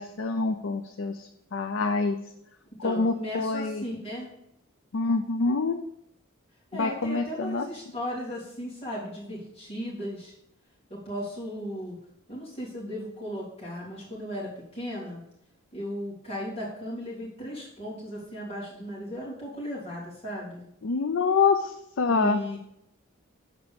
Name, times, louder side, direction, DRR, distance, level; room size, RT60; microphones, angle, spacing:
voice 1, 0.0-2.2 2.8-3.8 4.9-5.8 6.7-7.7 20.8-22.4, left 4 dB, 65° left, 6 dB, 0.4 m, -26 dB
voice 2, 2.8-4.3 6.7-10.3 10.9-12.0 12.3-15.2 15.7-20.6 22.1-22.6, equal, 30° left, -7 dB, 3.1 m, -36 dB
7.3 x 4.9 x 5.1 m, 0.77 s
head